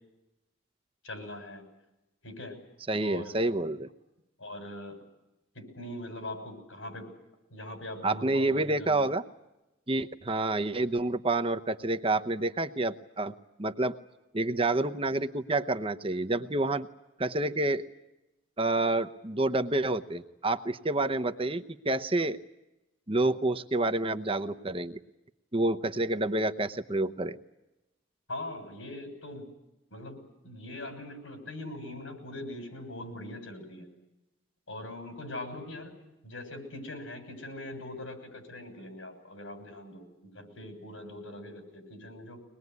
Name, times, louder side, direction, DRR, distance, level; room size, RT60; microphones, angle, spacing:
voice 1, 1.0-1.6 2.2-2.6 3.0-3.4 4.4-5.0 5.5-7.2 7.5-9.1 28.3-29.5 29.9-33.9 34.7-42.4, left 1 dB, 80° left, 6 dB, 6.7 m, -42 dB
voice 2, 2.9-3.9 8.0-9.2 9.9-13.3 13.6-13.9 14.3-16.9 17.2-17.8 18.6-22.4 23.1-25.0 25.5-27.4, right 2 dB, 25° right, 10 dB, 0.8 m, -28 dB
23.5 x 20.5 x 9.5 m, 0.95 s
head